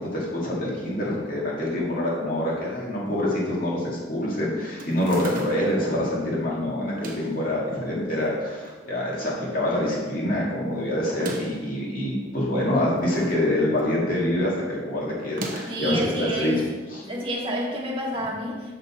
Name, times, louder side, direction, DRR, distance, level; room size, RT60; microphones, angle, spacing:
voice 1, 0.0-16.5 16.9-17.0, left 1 dB, 50° left, -5 dB, 2.1 m, -26 dB
sound 1, 4.8-5.8 6.8-7.4 8.2-8.8 9.2-9.3 9.5-9.6 11.0-11.7 12.7-13.5 13.8-14.1 15.2-15.9, right 2 dB, 45° right, 0.8 m, -38 dB
voice 2, 15.7-16.6 17.0-18.7, equal, 30° right, -3 dB, 1.3 m, -28 dB
6.7 x 5.3 x 4.3 m, 1.3 s
head